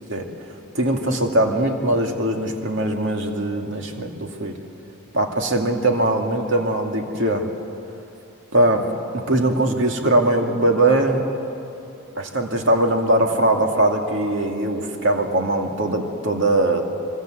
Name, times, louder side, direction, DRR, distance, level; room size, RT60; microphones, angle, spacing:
voice 1, 0.7-4.6 5.1-7.5 8.5-8.9 9.1-11.2 12.2-16.8, right 1 dB, 60° right, 3 dB, 2.3 m, -21 dB
26.5 x 24.0 x 7.9 m, 2.9 s
head